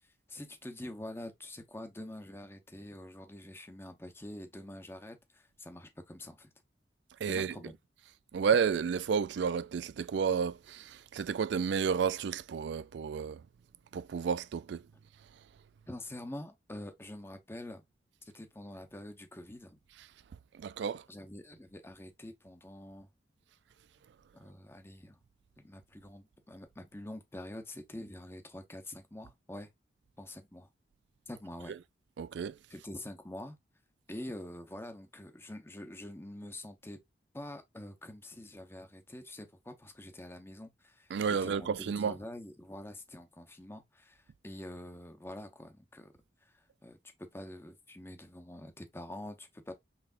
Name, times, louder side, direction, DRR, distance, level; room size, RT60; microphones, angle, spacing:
voice 1, 0.3-6.5 7.3-7.8 15.9-17.8 18.3-19.8 21.1-23.1 24.3-25.2 25.6-29.7 30.2-30.7 31.3-31.7 32.7-33.6 34.1-37.0 37.3-46.1 46.4-49.7, left 1 dB, 15° left, 0.9 m, -46 dB
voice 2, 7.2-7.6 8.3-13.4 13.9-14.8 20.5-21.0 32.2-32.6 41.1-42.1, right 6 dB, 70° right, 0.3 m, -31 dB
5.7 x 3.3 x 2.5 m
head